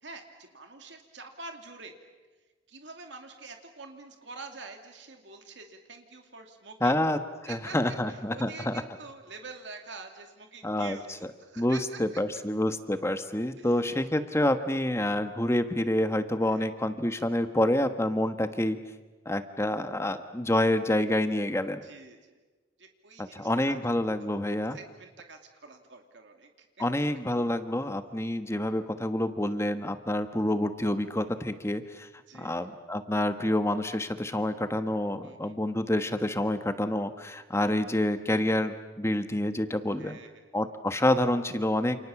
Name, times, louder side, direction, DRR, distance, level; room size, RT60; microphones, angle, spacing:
voice 1, 0.0-2.0 2.7-7.0 7.5-12.0 13.6-13.8 16.4-16.6 21.8-22.4 22.8-23.7 24.2-24.4 24.7-26.7 32.3-32.7 35.2-35.6 40.0-40.5, right 4 dB, 65° right, 4 dB, 2.6 m, -46 dB
voice 2, 6.8-8.8 10.6-11.0 11.6-18.8 19.2-21.8 23.2-24.8 26.8-32.1 32.3-40.2 40.5-42.0, left 1 dB, 15° left, 9 dB, 1.3 m, -28 dB
29.0 x 29.0 x 7.2 m, 1.3 s
head